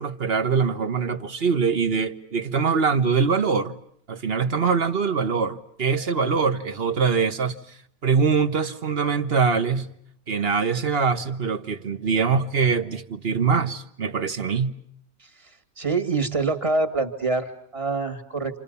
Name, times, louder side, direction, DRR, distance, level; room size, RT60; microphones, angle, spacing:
voice 1, 0.0-3.8 4.1-7.8 8.0-9.9 10.3-14.7, right 5 dB, 40° right, 1.5 m, -23 dB
voice 2, 15.8-18.6, right 3 dB, 20° right, 2.3 m, -25 dB
29.5 x 27.5 x 7.0 m
omnidirectional pair, 1.6 m